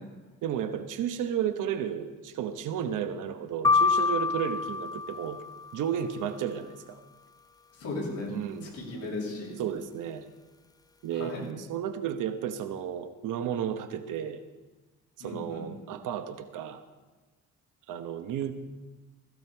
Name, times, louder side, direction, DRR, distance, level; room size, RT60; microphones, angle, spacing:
voice 1, 0.4-5.4 5.7-7.0 8.3-8.7 9.6-10.3 11.0-14.4 15.2-16.8 17.9-18.5, right 9 dB, 85° right, 8 dB, 1.0 m, -33 dB
sound 1, 3.6-5.8, left 4 dB, 15° left, 0.4 m, -26 dB
voice 2, 7.8-8.3 8.6-9.6 11.1-11.5 15.2-15.7, left 2 dB, 55° left, -3 dB, 6.9 m, -36 dB
16.5 x 16.0 x 4.5 m, 1.2 s
cardioid pair, 115°, 30 cm